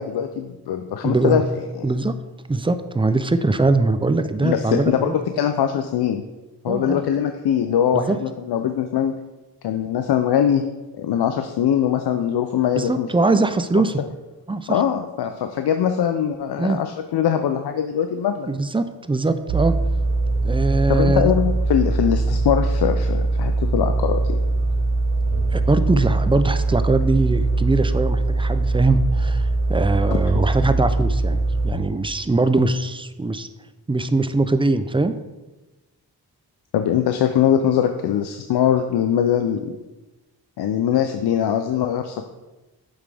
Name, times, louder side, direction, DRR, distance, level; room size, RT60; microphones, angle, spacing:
voice 1, 0.0-1.4 1.8-1.9 4.4-6.2 6.6-9.1 9.6-10.6 11.0-13.1 13.7-13.8 14.7-18.5 20.9-24.4 36.7-39.8 40.6-42.3, left 9 dB, 70° left, 7 dB, 0.5 m, -22 dB
voice 2, 1.0-1.4 1.8-2.2 2.5-5.2 6.7-7.0 7.9-8.2 12.8-14.0 14.5-14.8 16.6-16.8 18.5-19.7 20.4-21.3 25.5-33.5 33.9-35.1, right 3 dB, 15° right, 10 dB, 0.4 m, -21 dB
sound 1, 19.5-31.7, right 2 dB, 75° right, 0.7 m, -21 dB
8.7 x 3.5 x 3.3 m, 1.1 s
cardioid pair, 50°, 41 cm